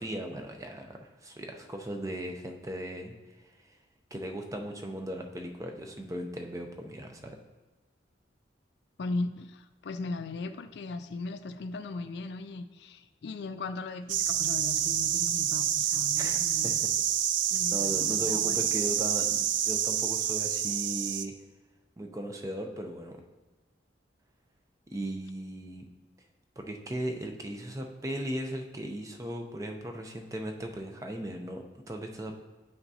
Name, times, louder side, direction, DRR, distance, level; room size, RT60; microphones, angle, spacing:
voice 1, 0.0-3.7 4.1-7.4 16.2-16.4 16.6-16.7 17.7-21.3 22.0-23.2 24.9-25.8 26.6-32.3, right 1 dB, 15° right, 3 dB, 0.5 m, -37 dB
voice 2, 9.0-16.8 17.5-18.7, left 3 dB, 60° left, 10 dB, 0.4 m, -38 dB
sound 1, 14.1-21.3, right 10 dB, 75° right, 0.4 m, -28 dB
9.0 x 5.8 x 2.8 m, 1.2 s
head